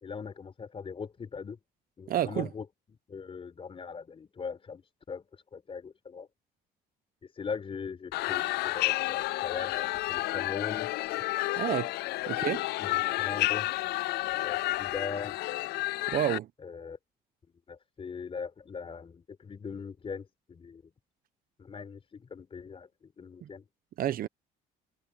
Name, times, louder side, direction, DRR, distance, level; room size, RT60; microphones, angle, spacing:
voice 1, 0.0-1.6 2.0-2.7 3.1-4.8 5.1-5.2 5.5-6.3 7.4-10.9 12.8-13.7 14.4-15.4 16.6-17.0 17.7-20.8 21.6-23.6, left 5 dB, 35° left, 4.4 m, -40 dB
voice 2, 2.1-2.5 11.6-11.9 12.3-12.7 16.1-16.5 23.4-23.5 24.0-24.3, right 11 dB, 60° right, 1.0 m, -29 dB
sound 1, 8.1-16.4, left 18 dB, 75° left, 0.4 m, -31 dB
cardioid pair, 110°, 17 cm